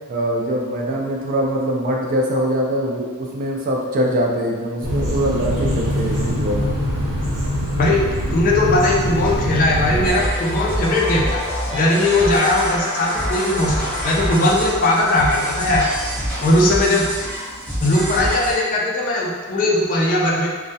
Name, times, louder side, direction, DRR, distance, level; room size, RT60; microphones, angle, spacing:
voice 1, 0.1-6.6, equal, 40° right, -1 dB, 0.3 m, -22 dB
sound 1, 4.8-10.1, equal, 80° right, 1.0 m, -23 dB
sound 2, 8.2-18.8, left 1 dB, 70° left, 0.7 m, -33 dB
voice 2, 8.3-11.4 11.7-15.9 16.4-17.1 17.8-20.5, left 1 dB, 40° left, -3 dB, 0.3 m, -18 dB
sound 3, 10.0-18.5, equal, 5° left, 0.8 m, -27 dB
2.2 x 2.1 x 2.6 m, 1.5 s
head